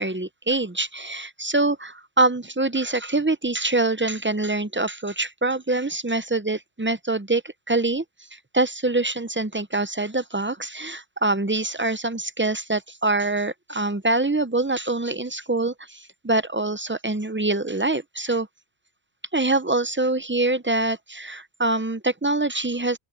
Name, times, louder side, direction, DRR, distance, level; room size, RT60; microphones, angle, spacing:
voice 1, 0.0-7.4 7.7-8.0 8.3-18.5 19.3-23.0, right 2 dB, 15° right, 0.4 m, -24 dB
open air
omnidirectional pair, 1.0 m